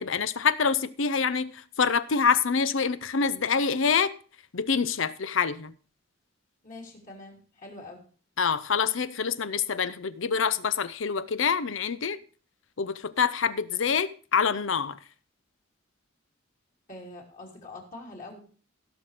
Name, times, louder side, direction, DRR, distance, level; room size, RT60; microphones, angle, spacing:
voice 1, 0.0-4.1 4.5-5.7 8.4-12.2 12.8-15.0, left 6 dB, 75° left, 0.7 m, -26 dB
voice 2, 6.6-8.0 16.9-18.4, left 2 dB, 40° left, 2.9 m, -44 dB
16.5 x 6.1 x 4.9 m
head